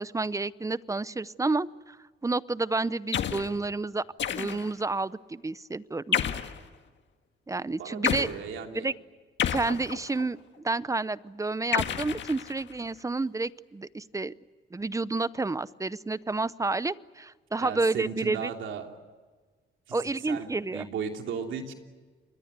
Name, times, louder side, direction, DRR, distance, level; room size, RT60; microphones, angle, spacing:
voice 1, 0.0-2.0 2.2-4.0 4.3-6.2 7.5-8.3 8.7-8.9 9.5-14.3 14.7-18.5 19.9-20.9, right 3 dB, 15° right, 18 dB, 0.7 m, -30 dB
sound 1, 3.1-3.5 4.2-4.8 6.1-6.6 8.0-8.3 9.4-10.3 11.7-12.8, left 9 dB, 65° left, 1.8 m, -30 dB
voice 2, 7.6-8.9 17.6-19.0 19.9-20.0 20.2-21.7, right 6 dB, 75° right, 4 dB, 3.1 m, -36 dB
28.0 x 22.0 x 8.2 m, 1.4 s
cardioid pair, 90°, 20 cm